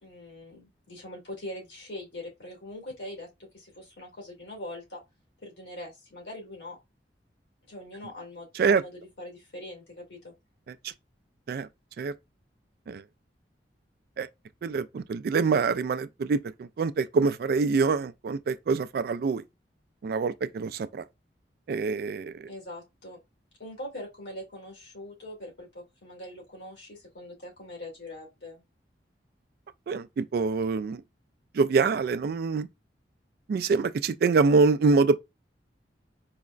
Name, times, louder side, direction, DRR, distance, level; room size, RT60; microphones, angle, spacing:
voice 1, 0.0-5.0 5.4-6.8 7.7-8.9 9.2-10.3 22.5-23.2 23.6-28.6, left 1 dB, 85° left, 2.2 m, -42 dB
voice 2, 14.6-19.4 20.0-21.0 21.7-22.5 29.9-31.0 31.5-32.7 33.5-35.2, right 4 dB, 60° right, 0.3 m, -25 dB
4.7 x 2.1 x 2.4 m
head